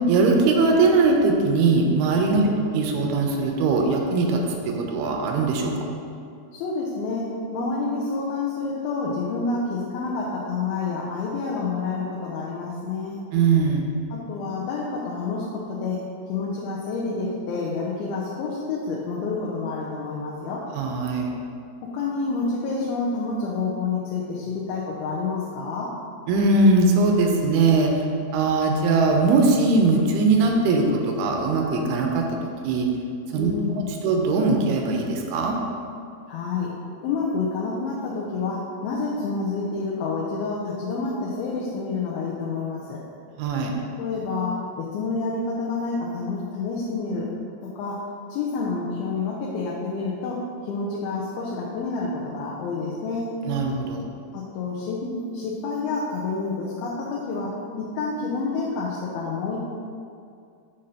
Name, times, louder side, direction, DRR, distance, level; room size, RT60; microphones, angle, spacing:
voice 1, 0.1-2.4 2.7-4.4 4.7-5.7 13.3-13.9 20.8-21.3 26.3-27.9 28.3-32.9 33.3-35.6 43.4-43.7 53.4-54.1, right 3 dB, 85° right, 1 dB, 2.6 m, -20 dB
voice 2, 2.4-2.7 6.5-13.2 14.1-16.0 16.3-20.7 21.8-25.9 33.4-33.9 36.3-36.7 37.0-43.0 44.0-47.3 47.8-48.0 48.3-53.3 54.3-59.6, left 4 dB, 80° left, -5 dB, 2.5 m, -28 dB
6.7 x 5.1 x 2.8 m, 2.4 s
omnidirectional pair, 4.5 m